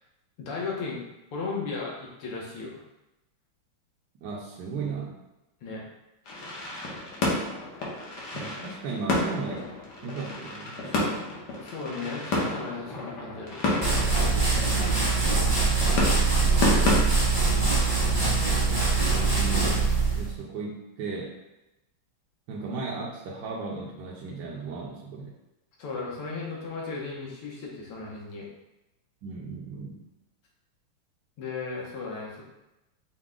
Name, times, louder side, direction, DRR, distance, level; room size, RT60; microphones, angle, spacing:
voice 1, 0.4-1.0 1.3-2.8 5.6-5.8 11.6-13.9 25.8-28.5 31.4-32.4, left 4 dB, 85° left, -3 dB, 1.9 m, -35 dB
voice 2, 4.2-5.1 8.3-9.7 10.0-11.2 12.0-12.1 18.9-21.3 22.5-25.3 29.2-30.0, right 4 dB, 70° right, -3 dB, 1.1 m, -36 dB
sound 1, 6.3-16.9, left 2 dB, 60° left, 1.4 m, -31 dB
sound 2, 13.8-20.3, right 4 dB, 25° right, 0.4 m, -23 dB
5.9 x 2.2 x 3.6 m, 0.94 s
omnidirectional pair, 2.4 m